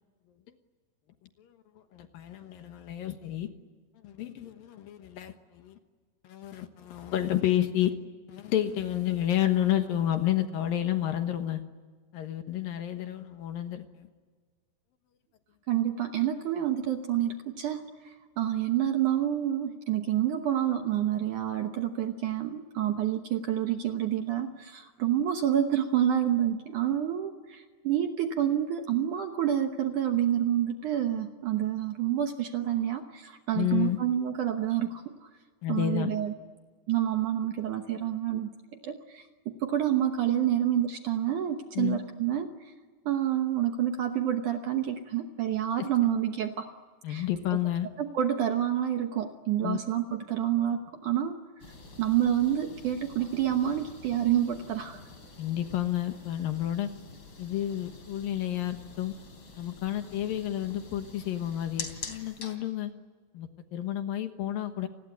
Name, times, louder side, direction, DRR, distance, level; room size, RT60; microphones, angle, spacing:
voice 1, 1.9-3.5 4.0-5.8 6.2-7.9 8.3-11.6 12.1-14.1 33.5-34.0 35.6-36.1 41.8-42.0 45.8-45.9 47.0-47.9 49.6-49.8 55.4-56.9 57.4-59.1 59.6-62.9 63.3-64.9, left 12 dB, 70° left, 8 dB, 2.7 m, -30 dB
voice 2, 15.7-35.3 35.7-36.3 36.9-38.5 38.8-42.7 43.1-46.7 47.1-47.3 48.0-51.4 52.0-55.0, right 10 dB, 70° right, 6 dB, 2.0 m, -28 dB
sound 1, 51.6-62.6, left 4 dB, 30° left, 3.6 m, -46 dB
29.5 x 20.5 x 9.5 m, 1.5 s
omnidirectional pair, 4.8 m